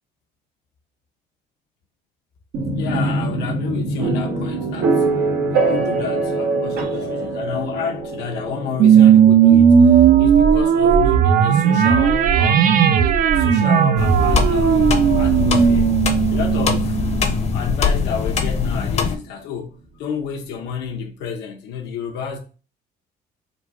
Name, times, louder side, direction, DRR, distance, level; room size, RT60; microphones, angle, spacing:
sound 1, 2.5-16.3, right 3 dB, 85° right, 1.0 m, -25 dB
voice 1, 2.6-5.1 5.5-12.6 13.3-15.9 16.3-17.0 17.4-22.4, left 6 dB, 85° left, 0.8 m, -30 dB
sound 2, 8.8-17.5, right 8 dB, 55° right, 0.5 m, -15 dB
sound 3, 14.0-19.2, left 5 dB, 40° left, 0.7 m, -22 dB
3.9 x 2.3 x 4.6 m
cardioid pair, 110°, 17 cm